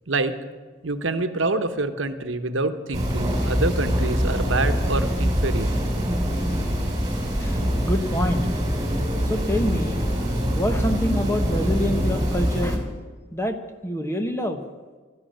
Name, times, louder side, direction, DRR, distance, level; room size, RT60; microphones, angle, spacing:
voice 1, 0.1-0.4 0.8-5.7, right 2 dB, 75° right, 9 dB, 1.1 m, -26 dB
sound 1, 2.9-12.8, equal, 20° right, 2.8 m, -24 dB
voice 2, 7.4-8.5 9.2-12.9 13.3-14.6, equal, 15° left, 6 dB, 1.0 m, -27 dB
13.0 x 10.5 x 8.8 m, 1.4 s
head